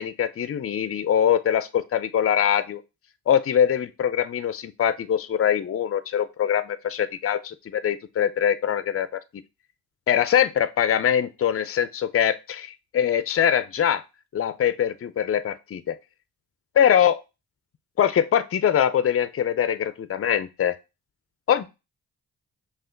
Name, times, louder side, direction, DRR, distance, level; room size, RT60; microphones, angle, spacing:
voice 1, 0.0-2.8 3.3-9.2 10.1-14.0 14.3-15.9 16.8-17.2 18.0-20.7 21.5-21.7, left 9 dB, 35° left, 14 dB, 0.5 m, -23 dB
5.6 x 2.5 x 3.8 m, 0.26 s
supercardioid pair, 55°, 40 cm